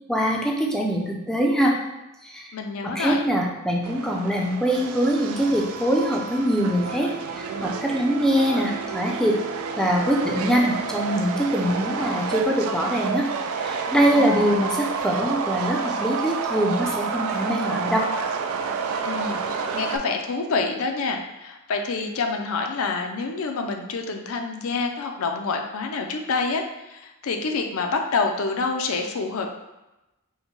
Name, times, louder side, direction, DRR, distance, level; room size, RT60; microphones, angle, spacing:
voice 1, 0.1-1.8 2.2-2.5 2.8-9.4 9.8-13.3 13.6-18.1, equal, 5° left, -1 dB, 0.4 m, -23 dB
voice 2, 2.5-3.2 14.1-14.6 19.0-19.4 19.7-29.5, left 4 dB, 65° left, 4 dB, 0.5 m, -27 dB
Subway metro underground, 3.8-20.0, right 5 dB, 70° right, 0.4 m, -29 dB
5.5 x 2.2 x 3.0 m, 0.99 s
head